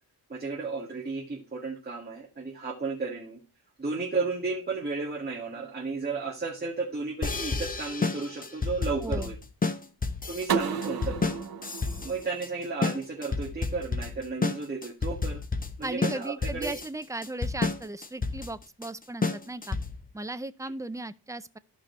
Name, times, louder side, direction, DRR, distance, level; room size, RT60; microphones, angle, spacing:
voice 1, 0.3-3.4 3.8-9.4 10.3-11.5 12.0-15.4 15.8-16.8, right 4 dB, 25° right, 1.8 m, -33 dB
sound 1, 7.2-20.1, left 4 dB, 20° left, 0.8 m, -31 dB
voice 2, 9.0-9.3 15.8-19.8 20.1-21.6, right 2 dB, 10° right, 0.4 m, -36 dB
sound 2, 10.5-13.3, right 6 dB, 65° right, 1.1 m, -33 dB
14.5 x 5.1 x 3.1 m
wide cardioid pair, 155°, 38 cm